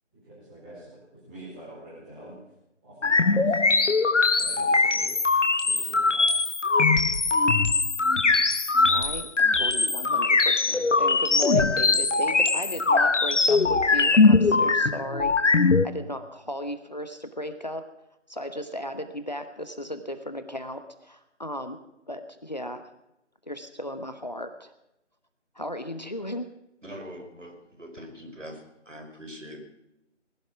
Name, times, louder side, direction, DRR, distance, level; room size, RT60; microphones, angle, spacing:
voice 1, 0.1-1.0 1.3-2.4 2.8-3.6 4.3-5.2 5.6-6.3, right 1 dB, 10° right, -9 dB, 5.1 m, -46 dB
sound 1, 3.0-15.9, left 3 dB, 75° left, 1.1 m, -21 dB
voice 2, 8.9-17.9 18.3-21.8 22.1-22.9 23.5-24.7 25.5-26.5, equal, 35° left, 9 dB, 1.0 m, -36 dB
voice 3, 26.8-28.6 28.8-29.6, equal, 80° right, 4 dB, 5.1 m, -42 dB
20.0 x 11.5 x 6.0 m, 0.87 s
figure-of-eight pair, 165°, 37 cm